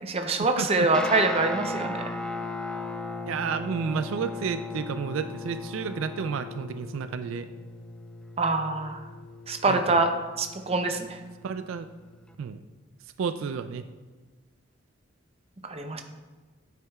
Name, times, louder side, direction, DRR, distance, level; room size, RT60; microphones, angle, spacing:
voice 1, 0.0-1.9 8.4-9.0 9.5-10.1 10.4-11.2 15.6-16.0, right 3 dB, 30° right, 6 dB, 0.6 m, -25 dB
voice 2, 0.6-1.1 3.3-7.5 9.6-10.1 11.4-11.9 12.4-12.6 13.2-13.9, right 6 dB, 75° right, 11 dB, 0.3 m, -31 dB
Guitar, 0.9-12.3, left 2 dB, 5° left, 0.3 m, -37 dB
9.1 x 8.4 x 2.3 m, 1.3 s
head